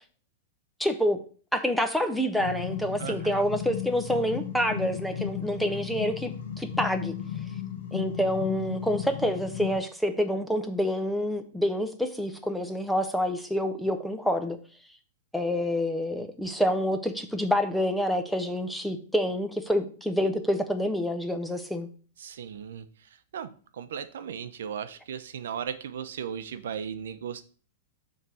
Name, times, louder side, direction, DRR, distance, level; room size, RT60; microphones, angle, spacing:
voice 1, 0.8-1.2 1.5-6.3 6.6-7.2 7.9-14.6 15.3-21.9, equal, ahead, 7 dB, 0.5 m, -27 dB
sound 1, 2.4-9.8, left 9 dB, 65° left, 1.9 m, -35 dB
voice 2, 3.0-3.4 22.2-22.9 23.3-27.4, right 8 dB, 75° right, 11 dB, 0.7 m, -36 dB
6.9 x 3.3 x 6.1 m, 0.41 s
supercardioid pair, 170°, 0 cm